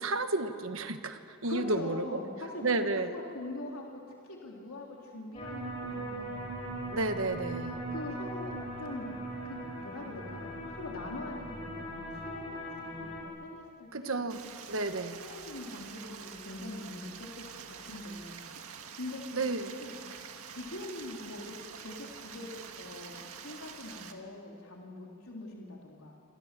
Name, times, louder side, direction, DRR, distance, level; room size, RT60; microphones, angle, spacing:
voice 1, 0.0-2.0 2.6-3.1 6.9-7.8 13.9-14.4 14.7-15.2 19.3-19.7, right 2 dB, 70° right, 8 dB, 1.4 m, -31 dB
voice 2, 1.4-6.9 7.9-9.1 9.4-14.2 14.9-17.3 17.6-18.4 18.9-19.5 19.8-19.9 20.5-22.5 22.8-26.1, left 2 dB, 85° left, -1 dB, 3.5 m, -43 dB
sound 1, 5.3-13.2, right 1 dB, 25° left, 6.2 m, -39 dB
Stream, 14.3-24.1, right 6 dB, 85° right, 2.0 m, -47 dB
26.0 x 26.0 x 7.6 m, 2.5 s
head